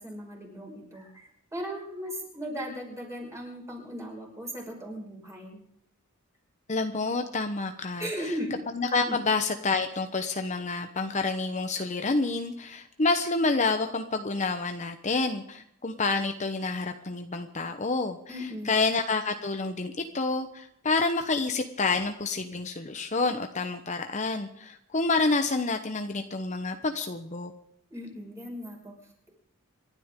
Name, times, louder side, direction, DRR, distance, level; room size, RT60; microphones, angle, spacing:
voice 1, 0.0-5.6 8.0-8.5 9.0-9.2 18.3-18.8 27.9-28.9, equal, 15° right, -1 dB, 5.5 m, -37 dB
voice 2, 6.7-8.3 8.7-18.2 18.7-27.5, left 3 dB, 35° left, 6 dB, 0.9 m, -28 dB
28.0 x 12.0 x 3.7 m, 0.74 s
head